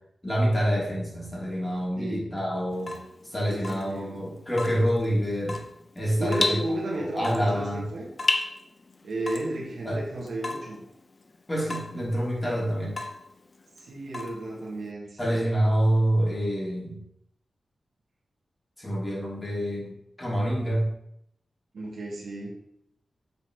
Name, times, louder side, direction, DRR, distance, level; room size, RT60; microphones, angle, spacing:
voice 1, 0.2-2.9 3.3-5.6 5.9-6.6 7.1-7.9 9.8-10.0 11.5-13.0 15.2-17.0 18.8-20.9, equal, 15° left, -5 dB, 3.0 m, -27 dB
voice 2, 2.0-2.3 3.5-4.2 6.2-8.1 9.0-10.8 13.8-15.4 21.7-22.6, right 1 dB, 80° right, -3 dB, 2.1 m, -33 dB
Water tap faucet / Drip, 2.7-14.9, left 3 dB, 40° left, 0.6 m, -35 dB
7.7 x 4.2 x 4.7 m, 0.76 s
wide cardioid pair, 80°, 0 cm